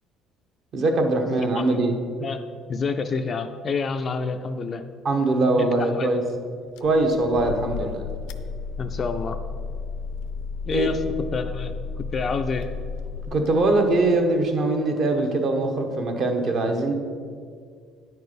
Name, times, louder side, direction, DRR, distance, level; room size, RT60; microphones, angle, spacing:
voice 1, 0.7-1.9 5.0-6.2 6.8-8.0 10.7-10.9 13.3-16.9, right 2 dB, 40° right, 4 dB, 1.1 m, -22 dB
voice 2, 2.7-4.8 5.6-6.1 7.8-7.9 8.8-9.4 10.7-11.0 11.3-12.7, left 4 dB, 30° left, 7 dB, 0.4 m, -28 dB
sound 1, 6.8-14.1, left 5 dB, 90° left, 0.5 m, -33 dB
9.8 x 4.6 x 6.6 m, 2.1 s
cardioid pair, 165°, 0 cm